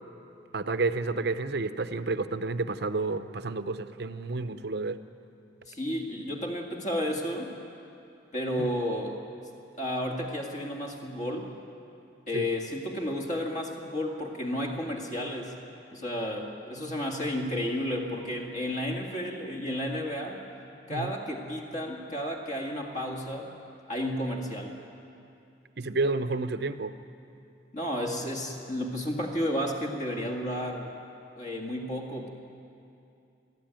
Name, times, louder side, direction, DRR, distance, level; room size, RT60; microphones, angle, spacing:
voice 1, 0.5-5.0 8.6-8.7 12.3-12.5 20.9-21.1 25.8-26.9, right 3 dB, 60° right, 11 dB, 0.7 m, -30 dB
voice 2, 5.7-7.5 8.3-9.2 9.8-11.5 12.3-15.5 15.9-20.4 20.9-23.5 23.9-24.8 27.7-30.9 31.4-32.3, left 1 dB, 40° left, 1 dB, 2.0 m, -32 dB
22.0 x 14.0 x 9.1 m, 2.6 s
head